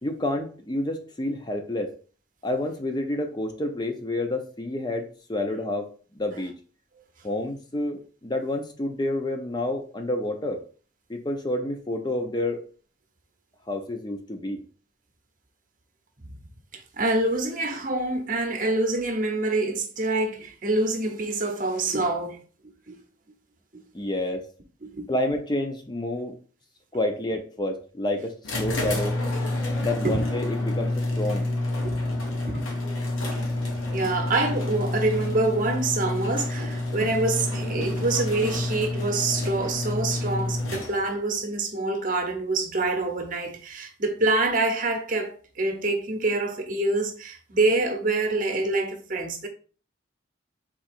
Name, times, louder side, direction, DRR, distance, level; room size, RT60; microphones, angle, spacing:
voice 1, 0.0-1.9 2.4-5.9 6.1-6.5 7.2-10.6 11.1-12.6 13.7-14.6 23.9-24.4 25.1-26.4 26.9-29.2 29.8-31.5, left 1 dB, 20° left, 0.5 m, -29 dB
voice 2, 16.7-22.4 22.6-23.0 23.7-23.8 24.8-25.1 30.0-30.2 31.8-32.1 32.4-32.6 33.9-49.5, right 2 dB, 40° right, 0.8 m, -26 dB
sound 1, 28.4-41.2, left 2 dB, 90° left, 1.1 m, -28 dB
3.7 x 2.9 x 4.4 m
head